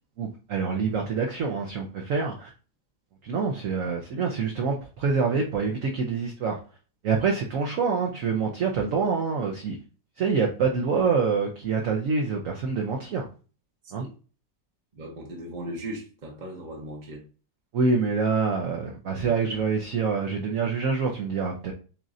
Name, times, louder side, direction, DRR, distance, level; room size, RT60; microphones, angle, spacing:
voice 1, 0.2-2.5 3.2-6.6 7.0-9.8 10.2-13.3 13.9-14.0 17.7-21.7, right 5 dB, 60° right, 1 dB, 0.9 m, -26 dB
voice 2, 14.9-17.2 19.1-19.4, right 1 dB, 35° right, -2 dB, 0.9 m, -38 dB
7.3 x 2.5 x 2.6 m, 0.36 s
omnidirectional pair, 1.9 m